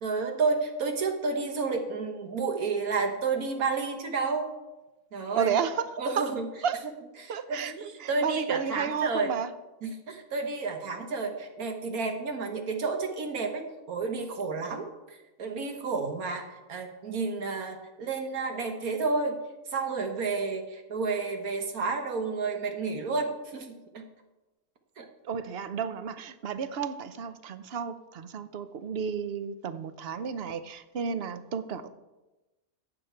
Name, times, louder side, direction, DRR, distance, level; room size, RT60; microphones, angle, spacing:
voice 1, 0.0-4.5 5.1-5.6 6.0-6.5 7.2-9.3 9.8-19.4 19.7-24.1 25.0-25.1, right 4 dB, 85° right, 4 dB, 1.7 m, -31 dB
voice 2, 5.3-6.3 6.6-6.8 7.3-9.5 14.6-14.8 25.2-31.9, right 7 dB, 55° right, 12 dB, 0.8 m, -32 dB
15.0 x 9.0 x 4.5 m, 1.1 s
omnidirectional pair, 1.5 m